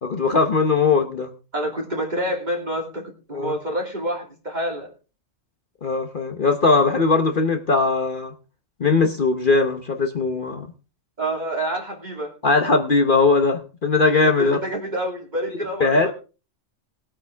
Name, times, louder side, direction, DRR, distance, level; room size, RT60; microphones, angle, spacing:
voice 1, 0.0-1.3 3.3-3.6 5.8-8.3 8.8-10.7 12.4-14.6 15.8-16.1, left 3 dB, 45° left, 6 dB, 1.2 m, -19 dB
voice 2, 1.5-4.9 11.2-12.3 14.2-16.1, right 1 dB, 35° right, 1 dB, 3.0 m, -28 dB
19.5 x 8.8 x 3.5 m, 0.34 s
omnidirectional pair, 1.3 m